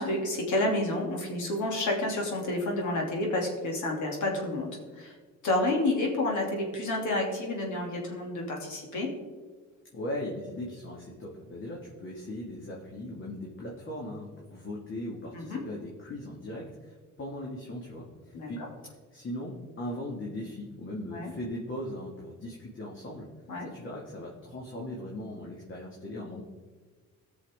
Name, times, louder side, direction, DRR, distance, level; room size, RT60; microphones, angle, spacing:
voice 1, 0.0-5.1 5.4-9.1 15.3-15.6 18.3-18.7 21.1-21.3 23.5-23.7, left 2 dB, 75° left, 0 dB, 2.6 m, -30 dB
voice 2, 9.9-23.3 23.6-26.4, left 1 dB, 40° left, -3 dB, 2.1 m, -39 dB
16.5 x 6.3 x 3.6 m, 1.5 s
cardioid pair, 90°, 30 cm